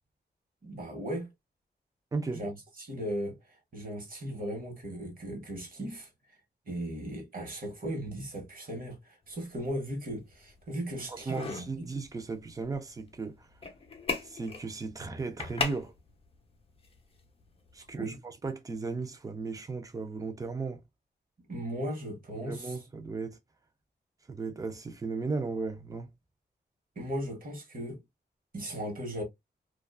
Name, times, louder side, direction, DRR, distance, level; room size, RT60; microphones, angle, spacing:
voice 1, 0.6-1.3 2.3-2.5 2.8-6.4 6.7-11.9 18.0-18.2 21.5-22.8 27.0-28.0 28.5-29.2, equal, 50° right, 1.1 m, -37 dB
voice 2, 2.1-2.4 11.1-13.5 14.2-15.9 17.7-20.8 22.4-23.4 24.3-26.1, right 4 dB, 20° right, 0.4 m, -36 dB
sound 1, 9.2-18.1, left 4 dB, 30° left, 0.5 m, -41 dB
2.4 x 2.3 x 2.3 m
wide cardioid pair, 165°, 18 cm